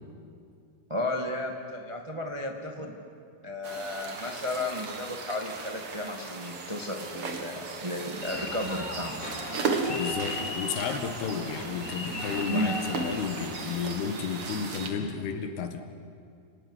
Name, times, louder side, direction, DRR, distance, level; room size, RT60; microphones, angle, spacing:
voice 1, 0.9-3.0 3.4-9.1 12.5-12.8, left 1 dB, 25° right, 2 dB, 0.6 m, -33 dB
sound 1, 3.6-14.9, right 4 dB, 45° right, 2.5 m, -36 dB
sound 2, 8.2-13.6, left 2 dB, 25° left, 2.8 m, -37 dB
voice 2, 9.6-15.8, left 6 dB, 75° left, 7 dB, 3.7 m, -33 dB
30.0 x 18.5 x 10.0 m, 2.3 s
omnidirectional pair, 4.6 m